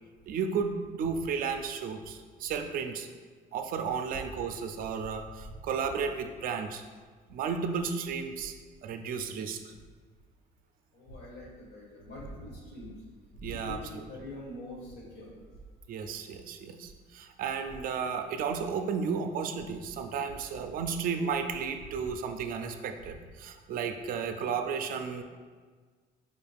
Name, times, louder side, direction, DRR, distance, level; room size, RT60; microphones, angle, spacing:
voice 1, 0.3-3.1 3.5-6.8 7.3-8.5 8.8-9.7 13.4-14.1 15.9-25.2, right 6 dB, 55° right, 6 dB, 0.4 m, -33 dB
voice 2, 10.9-12.9 13.4-15.3, equal, 80° left, -3 dB, 1.3 m, -43 dB
4.9 x 2.3 x 3.4 m, 1.5 s
cardioid pair, 110°, 17 cm